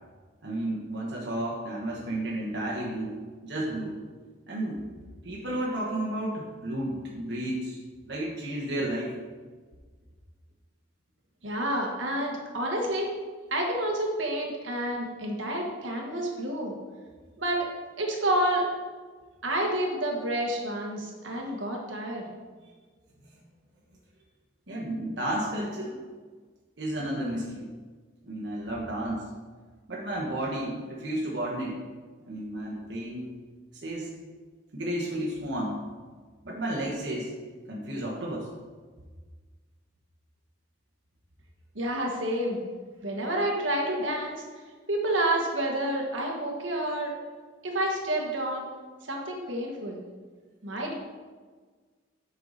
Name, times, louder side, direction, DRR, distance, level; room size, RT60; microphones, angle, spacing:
voice 1, 0.4-3.9 4.5-4.9 5.2-7.8 8.0-9.2 22.6-22.7 23.2-23.3 24.7-25.9 26.8-27.7 28.2-29.3 29.9-31.8 32.3-33.3 33.7-34.1 34.7-35.8 36.4-37.3 37.7-38.5, right 1 dB, 60° right, -4 dB, 1.3 m, -32 dB
voice 2, 11.4-13.1 13.5-16.7 17.4-17.7 18.0-18.7 19.4-22.3 41.7-42.6 43.0-44.4 44.9-47.1 47.6-48.7 49.1-50.0 50.6-50.9, right 1 dB, 75° right, 0 dB, 1.5 m, -29 dB
8.1 x 5.7 x 4.1 m, 1.4 s
head